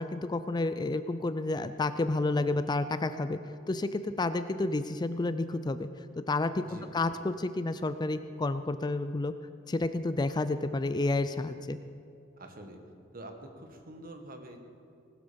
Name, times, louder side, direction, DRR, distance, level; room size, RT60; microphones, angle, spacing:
voice 1, 0.0-3.4 3.7-5.9 6.3-9.3 9.7-11.8, left 2 dB, 20° left, 11 dB, 0.4 m, -30 dB
voice 2, 12.4-12.8 13.1-14.6, right 1 dB, 50° right, 4 dB, 1.7 m, -46 dB
19.0 x 12.5 x 5.2 m, 2.6 s
head